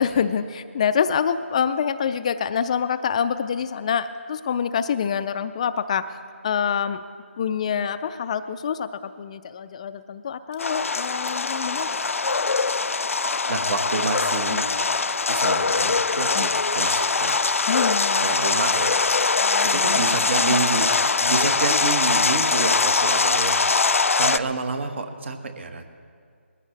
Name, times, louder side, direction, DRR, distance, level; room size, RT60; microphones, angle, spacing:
voice 1, 0.0-6.1 6.4-7.0 7.4-11.9 14.5-14.6 16.3-16.5 17.7-18.3 19.4-20.6 21.3-21.8, left 7 dB, 30° left, 12 dB, 0.4 m, -26 dB
Fill (with liquid), 10.5-17.4, right 6 dB, 20° right, 0.7 m, -45 dB
sound 1, 10.6-24.4, left 4 dB, 85° left, 0.5 m, -22 dB
voice 2, 13.5-14.7 15.3-17.4 18.1-19.0 19.4-20.9 21.1-23.7 24.1-25.8, right 3 dB, 55° right, 6 dB, 1.6 m, -28 dB
sound 2, 16.6-21.7, right 1 dB, 80° right, 4.9 m, -52 dB
21.0 x 15.0 x 3.3 m, 2.1 s
figure-of-eight pair, 160°, 7 cm